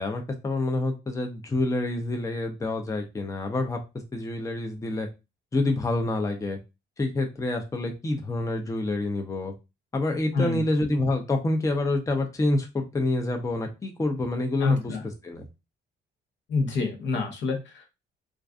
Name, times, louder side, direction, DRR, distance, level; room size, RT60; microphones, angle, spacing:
voice 1, 0.0-3.8 4.1-5.1 5.5-6.6 7.0-9.5 9.9-15.0 15.2-15.4, left 2 dB, 15° left, 4 dB, 0.5 m, -27 dB
voice 2, 14.6-15.0 16.5-17.9, left 4 dB, 70° left, 4 dB, 0.8 m, -27 dB
2.4 x 2.4 x 2.3 m, 0.26 s
cardioid pair, 90°, 20 cm